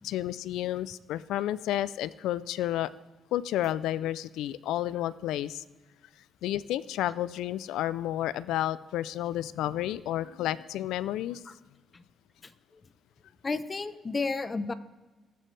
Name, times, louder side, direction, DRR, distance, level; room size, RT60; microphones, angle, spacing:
voice 1, 0.0-2.9 3.3-5.6 6.4-11.4, left 13 dB, 80° left, 17 dB, 0.4 m, -31 dB
voice 2, 12.4-12.8 13.4-14.7, left 4 dB, 35° left, 13 dB, 0.8 m, -33 dB
19.5 x 7.6 x 3.3 m, 1.2 s
supercardioid pair, 60°, 0 cm